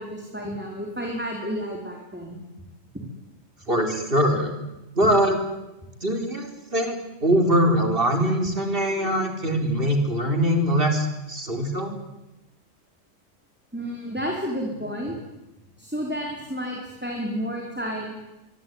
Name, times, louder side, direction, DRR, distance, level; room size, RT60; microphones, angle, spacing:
voice 1, 0.0-2.4 13.7-15.2 15.8-18.2, equal, 10° right, 0 dB, 4.4 m, -31 dB
voice 2, 3.7-4.5 4.9-5.4 6.0-11.9, equal, 45° right, 4 dB, 4.6 m, -22 dB
25.0 x 24.0 x 9.7 m, 0.97 s
omnidirectional pair, 1.4 m